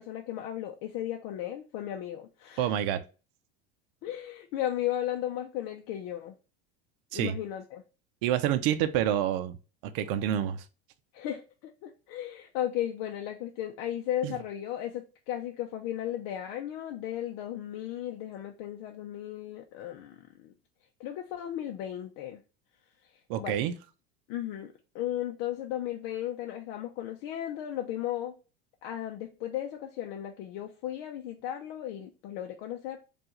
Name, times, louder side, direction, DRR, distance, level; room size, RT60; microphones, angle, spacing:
voice 1, 0.0-2.7 4.0-6.4 7.1-7.8 11.1-20.5 21.0-22.4 23.4-23.6 24.3-28.3 28.8-33.0, left 11 dB, 60° left, 0.6 m, -35 dB
voice 2, 2.6-3.0 7.1-7.4 8.2-9.6 9.8-10.7 14.2-14.3 23.3-23.7, right 11 dB, 65° right, 0.6 m, -28 dB
4.4 x 2.4 x 3.0 m
hypercardioid pair, 95°, 29 cm